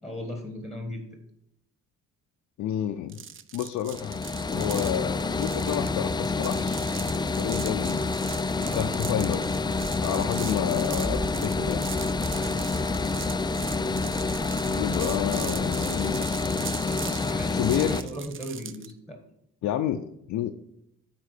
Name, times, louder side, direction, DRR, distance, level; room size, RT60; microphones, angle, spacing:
voice 1, 0.0-1.1 8.5-9.1 10.1-10.3 12.2-12.6 16.9-19.2, left 1 dB, ahead, 4 dB, 1.5 m, -37 dB
voice 2, 2.6-3.2 3.5-4.2 4.5-6.9 7.4-8.2 8.7-9.4 10.0-11.9 14.7-16.7 17.5-18.0 19.6-20.5, left 11 dB, 75° left, 5 dB, 0.5 m, -30 dB
sound 1, 3.1-18.9, right 9 dB, 45° right, 0.5 m, -40 dB
sound 2, 3.9-18.0, left 3 dB, 15° left, 0.4 m, -28 dB
sound 3, 9.7-16.1, equal, 25° right, 2.4 m, -38 dB
9.2 x 3.8 x 6.6 m, 0.77 s
cardioid pair, 90°, 30 cm